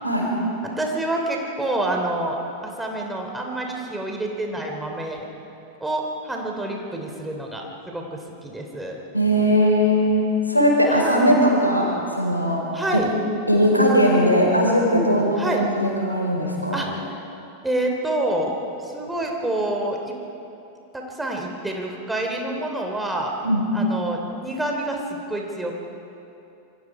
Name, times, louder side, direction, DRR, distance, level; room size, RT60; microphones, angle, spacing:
voice 1, 0.6-5.3 5.8-9.0 10.9-11.4 12.7-13.1 15.4-15.6 16.7-17.2 17.6-18.5 18.8-20.1 20.9-23.3 23.7-25.7, right 1 dB, 5° right, 1 dB, 3.1 m, -28 dB
voice 2, 9.1-10.2 10.5-12.6 12.9-13.0 13.5-16.8 23.4-23.6, equal, 90° left, -1 dB, 4.7 m, -19 dB
27.5 x 23.5 x 4.9 m, 2.8 s
figure-of-eight pair, 90°, 0 cm